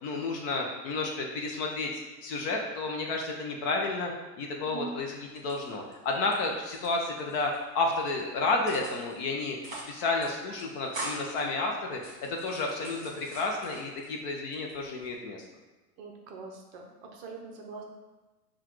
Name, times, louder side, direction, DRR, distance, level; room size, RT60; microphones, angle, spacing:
voice 1, 0.0-9.6 9.9-15.5, left 3 dB, 35° left, 1 dB, 0.5 m, -31 dB
sound 1, 5.3-6.3 6.6-7.6 7.9-8.2 8.7-9.2 9.5-9.9 10.2-10.3 10.6-11.4 11.9-14.1 14.5-15.1, right 1 dB, 20° right, 1.5 m, -42 dB
voice 2, 16.0-17.8, right 4 dB, 35° right, 1 dB, 0.6 m, -43 dB
5.6 x 2.4 x 3.0 m, 1.1 s
hypercardioid pair, 130°, 48 cm